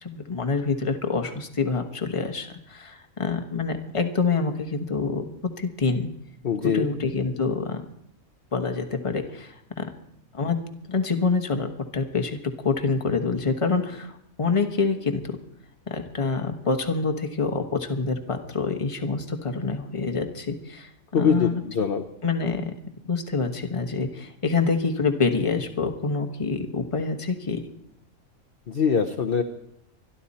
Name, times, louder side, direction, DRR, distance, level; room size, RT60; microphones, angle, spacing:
voice 1, 0.0-5.3 5.6-6.1 6.6-7.9 8.5-9.9 10.3-10.6 10.9-14.1 14.4-15.4 15.9-20.9 21.2-21.6 22.2-22.7 23.0-27.6, left 4 dB, 25° left, 6 dB, 1.2 m, -26 dB
voice 2, 6.4-6.9 21.1-22.0 28.7-29.4, left 6 dB, 45° left, 4 dB, 0.9 m, -23 dB
24.5 x 11.5 x 4.2 m, 0.78 s
omnidirectional pair, 1.5 m